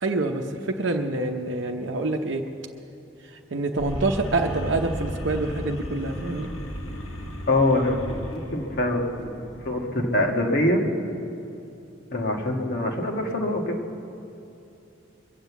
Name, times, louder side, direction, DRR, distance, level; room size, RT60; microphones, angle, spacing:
voice 1, 0.0-2.4 3.5-6.5, right 2 dB, 65° right, 3 dB, 0.8 m, -26 dB
sound 1, 3.8-10.0, equal, 90° left, 1.7 m, -35 dB
voice 2, 7.5-10.8 12.1-13.7, left 1 dB, 50° left, 1 dB, 1.7 m, -24 dB
23.0 x 7.7 x 8.2 m, 2.7 s
head